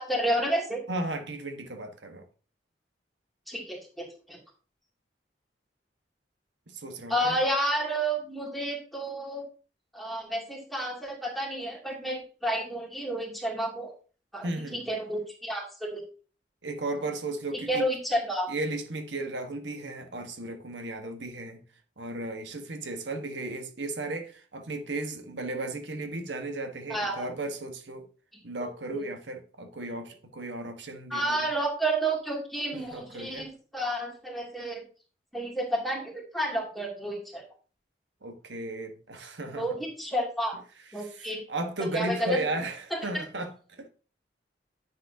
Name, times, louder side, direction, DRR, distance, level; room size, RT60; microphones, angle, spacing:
voice 1, 0.0-0.8 3.5-4.4 7.1-9.4 9.9-13.9 14.3-16.0 17.7-18.5 26.9-27.3 28.6-29.0 31.1-34.8 35.3-37.4 39.6-40.5 40.9-41.4 41.9-42.4 42.9-43.2, right 1 dB, ahead, 2.7 m, -30 dB
voice 2, 0.9-2.2 6.7-7.4 14.4-14.8 16.6-17.8 18.5-21.6 22.0-28.1 28.4-31.4 32.7-33.5 38.2-39.7 41.0-43.9, right 2 dB, 85° right, 1.3 m, -35 dB
10.0 x 7.2 x 2.8 m
head